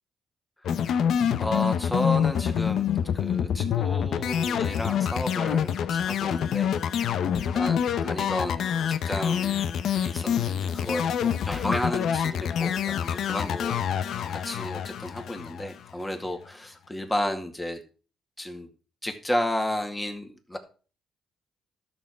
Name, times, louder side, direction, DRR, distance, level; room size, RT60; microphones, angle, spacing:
sound 1, 0.6-16.0, left 8 dB, 70° left, 0.7 m, -26 dB
voice 1, 1.4-2.9 3.1-6.7 7.4-9.6 9.9-17.8 18.4-18.7 19.0-20.6, left 1 dB, 10° left, 5 dB, 2.1 m, -32 dB
12.5 x 6.7 x 4.6 m, 0.37 s
cardioid pair, 90°, 0 cm